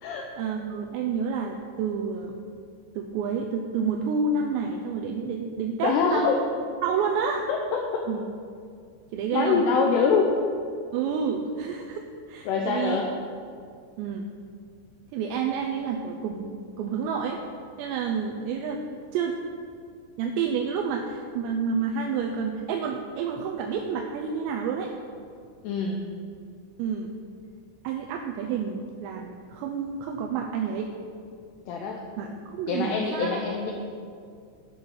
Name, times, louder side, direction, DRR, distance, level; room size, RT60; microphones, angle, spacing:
voice 1, 0.4-2.3 3.0-6.4 6.8-7.4 8.1-8.2 9.1-9.6 10.9-13.0 14.0-14.3 15.1-17.4 17.8-19.4 20.2-24.9 26.8-27.1 27.8-30.9 32.2-33.4, right 6 dB, 85° right, 2 dB, 2.5 m, -29 dB
voice 2, 5.8-6.4 7.5-8.0 9.3-10.3 12.5-13.1 25.6-26.0 31.7-32.0 32.7-33.7, left 5 dB, 90° left, 1 dB, 2.3 m, -24 dB
9.3 x 5.5 x 6.1 m, 2.3 s
omnidirectional pair, 5.5 m